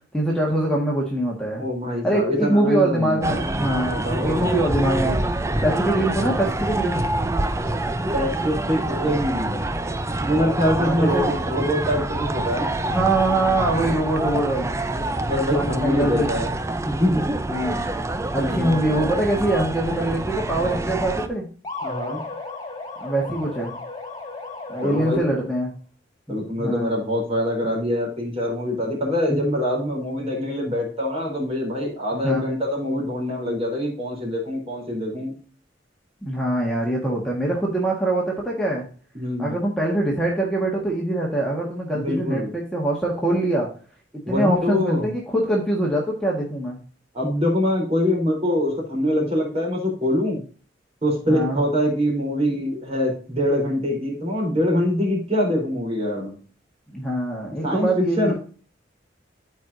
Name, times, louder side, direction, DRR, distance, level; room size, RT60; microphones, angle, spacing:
voice 1, 0.1-1.6 2.0-5.2 5.6-7.0 10.8-11.3 12.9-14.8 15.5-16.3 17.5-17.9 18.3-21.5 23.0-23.8 24.7-25.7 26.3-26.9 32.2-32.4 36.2-38.8 39.4-43.7 44.3-46.8 51.3-51.6 56.9-58.3, right 1 dB, 5° left, -3 dB, 1.6 m, -23 dB
voice 2, 1.6-3.4 3.8-4.6 8.1-9.7 10.2-12.8 15.2-16.5 16.8-17.3 18.3-18.7 21.8-22.2 24.8-25.2 26.3-35.3 39.1-39.5 41.9-42.5 44.3-45.0 47.1-50.4 51.0-56.4 57.6-58.3, left 1 dB, 35° right, -2 dB, 3.8 m, -24 dB
sound 1, 3.2-21.3, right 2 dB, 15° right, 0.6 m, -26 dB
sound 2, 21.6-25.5, left 3 dB, 20° left, 2.2 m, -35 dB
13.0 x 4.7 x 2.7 m, 0.40 s
head